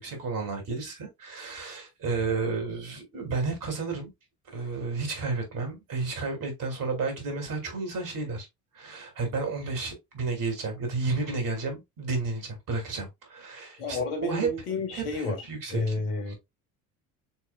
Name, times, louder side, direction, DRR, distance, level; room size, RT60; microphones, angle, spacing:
voice 1, 0.0-4.1 4.5-8.5 8.7-14.5 14.9-15.9 16.3-16.4, right 4 dB, 45° right, 2.7 m, -32 dB
voice 2, 13.8-15.4 15.7-16.3, left 3 dB, 75° left, 1.8 m, -31 dB
7.0 x 3.2 x 2.3 m
hypercardioid pair, 65°, 45 cm